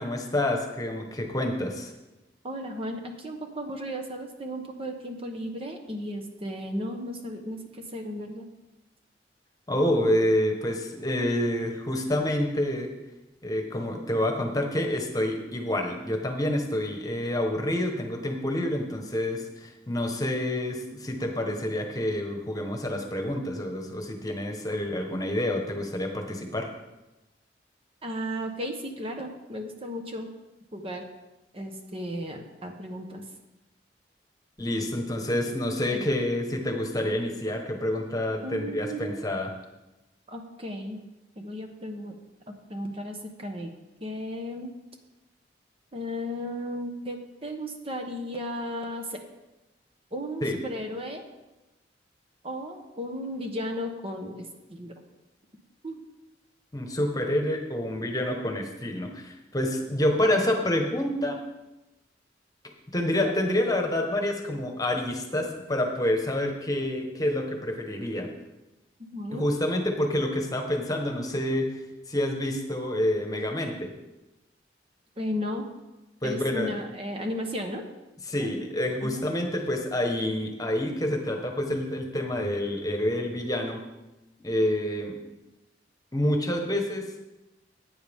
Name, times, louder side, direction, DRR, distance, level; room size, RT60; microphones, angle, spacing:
voice 1, 0.0-1.9 9.7-12.9 13.4-26.7 34.6-39.5 50.4-50.6 56.7-61.4 62.9-68.3 69.3-71.7 72.1-73.9 76.2-76.7 78.3-83.8 84.4-85.1 86.1-87.3, left 1 dB, 20° left, 3 dB, 1.4 m, -28 dB
voice 2, 2.4-8.5 28.0-30.3 30.7-31.0 31.5-33.2 35.9-36.1 38.4-39.3 40.3-41.0 41.4-42.2 42.5-43.7 44.0-44.7 45.9-49.2 50.1-51.2 52.4-54.9 55.8-56.0 69.0-69.5 75.2-75.6 76.2-77.8 78.4-78.6 79.0-79.3, equal, 35° right, 4 dB, 1.2 m, -35 dB
15.5 x 9.0 x 3.7 m, 1.0 s
head